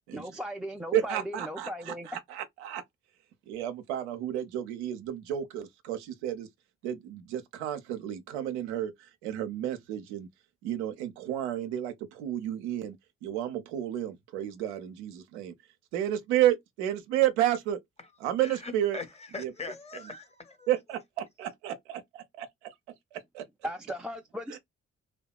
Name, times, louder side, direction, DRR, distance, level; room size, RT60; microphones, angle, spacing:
voice 1, 0.1-2.2 23.6-24.6, equal, 5° right, 0.3 m, -37 dB
voice 2, 0.9-2.8 3.5-6.5 6.8-8.9 9.2-10.3 10.6-12.9 13.2-15.5 15.9-17.8 18.2-19.0 19.4-19.5 20.7-22.7 23.1-23.4, right 12 dB, 90° right, 0.5 m, -31 dB
voice 3, 18.4-19.1 19.3-20.7, left 3 dB, 20° left, 0.9 m, -40 dB
2.7 x 2.2 x 2.2 m
hypercardioid pair, 45°, 32 cm